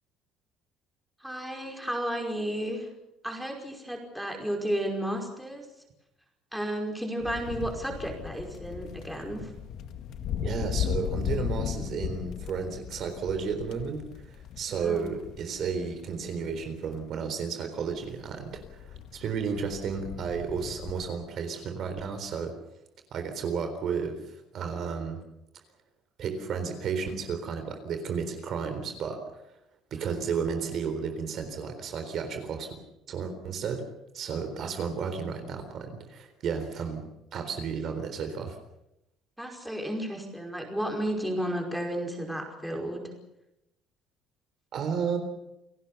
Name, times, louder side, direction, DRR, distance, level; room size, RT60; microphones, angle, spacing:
voice 1, 1.2-2.9 3.2-5.7 6.5-9.5 14.7-15.1 39.4-43.0, right 1 dB, ahead, 1 dB, 5.1 m, -33 dB
sound 1, 7.2-17.0 17.9-21.1, left 8 dB, 55° left, 2.0 m, -36 dB
voice 2, 10.4-22.6 23.1-25.2 26.2-29.4 29.9-32.7 33.1-33.9 34.1-38.6 44.7-45.2, right 6 dB, 45° right, 7 dB, 3.9 m, -33 dB
29.0 x 18.0 x 6.9 m, 0.87 s
cardioid pair, 155°, 0 cm